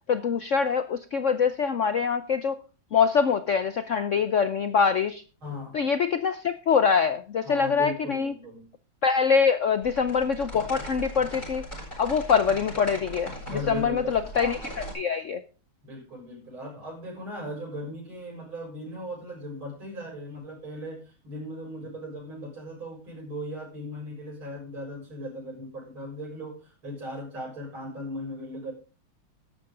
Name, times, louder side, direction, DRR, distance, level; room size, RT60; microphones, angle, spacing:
voice 1, 0.1-2.6 2.9-5.2 5.7-8.3 9.0-11.7 12.0-15.4, left 6 dB, 85° left, 11 dB, 0.6 m, -24 dB
voice 2, 5.4-5.8 7.4-8.6 13.5-14.7 15.8-28.7, equal, 80° right, -3 dB, 7.7 m, -38 dB
sound 1, 9.8-14.9, equal, 20° left, 7.3 m, -39 dB
13.5 x 11.5 x 3.8 m, 0.33 s
omnidirectional pair, 2.2 m